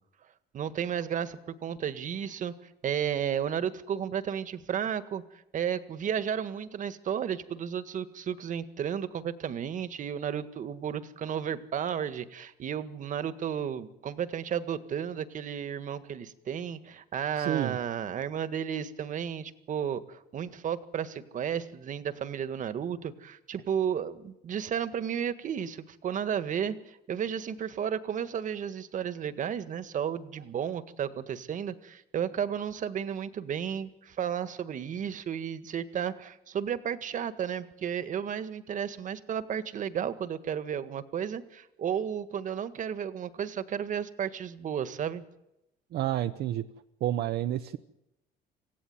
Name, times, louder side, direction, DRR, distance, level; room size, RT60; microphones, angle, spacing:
voice 1, 0.5-2.5 2.8-5.2 5.5-45.2, right 8 dB, 50° right, 12 dB, 1.8 m, -33 dB
voice 2, 17.4-17.8 45.9-46.6 47.0-47.8, right 12 dB, 70° right, 8 dB, 1.1 m, -29 dB
27.0 x 16.0 x 9.6 m, 0.91 s
cardioid pair, 110°, 17 cm